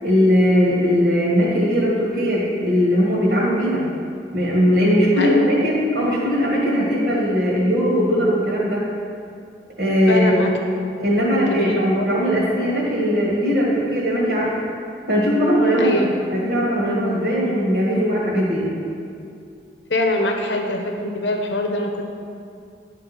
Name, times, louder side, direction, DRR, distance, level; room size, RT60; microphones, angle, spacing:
voice 1, 0.0-3.8 4.3-8.9 9.8-10.4 11.0-14.5 15.1-18.7, equal, 70° right, -5 dB, 1.7 m, -19 dB
voice 2, 5.2-5.6 10.1-10.5 11.3-12.3 15.8-16.1 19.9-22.0, left 2 dB, 80° left, 3 dB, 0.8 m, -23 dB
11.0 x 3.8 x 5.8 m, 2.4 s
head